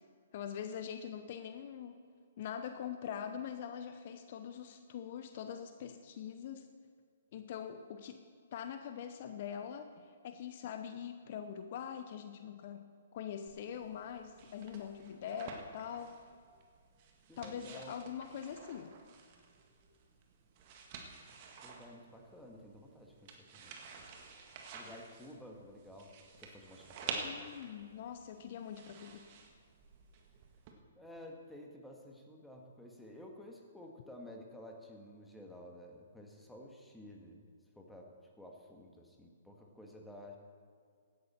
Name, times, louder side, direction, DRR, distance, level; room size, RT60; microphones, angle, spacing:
voice 1, 0.3-2.0 2.4-6.7 7.3-8.2 8.5-12.8 13.1-16.2 17.4-18.9 27.2-29.3, left 8 dB, 50° left, 8 dB, 0.8 m, -43 dB
sound 1, 13.5-30.7, right 5 dB, 40° right, 1.7 m, -50 dB
voice 2, 17.3-17.9 21.6-23.7 24.7-26.1 26.4-27.3 31.0-37.5 37.7-38.1 38.4-40.4, left 1 dB, ahead, 0 dB, 1.7 m, -52 dB
16.0 x 11.5 x 4.4 m, 2.1 s
figure-of-eight pair, 125°, 0 cm